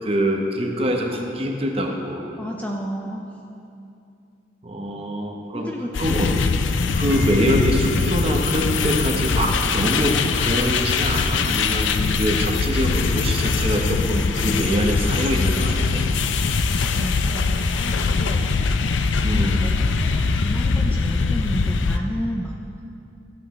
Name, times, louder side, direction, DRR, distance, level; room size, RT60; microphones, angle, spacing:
voice 1, 0.0-2.2 4.6-5.7 6.0-6.3 6.9-16.1 19.2-19.6, equal, 30° right, 1 dB, 0.9 m, -24 dB
voice 2, 2.4-3.2 5.5-5.9 16.6-18.5 19.3-22.6, equal, 10° left, 0 dB, 0.4 m, -32 dB
sound 1, 5.9-22.0, left 4 dB, 90° left, 0.5 m, -22 dB
Piano, 7.0-17.4, left 2 dB, 75° right, 1.5 m, -43 dB
13.0 x 8.6 x 3.2 m, 2.6 s
head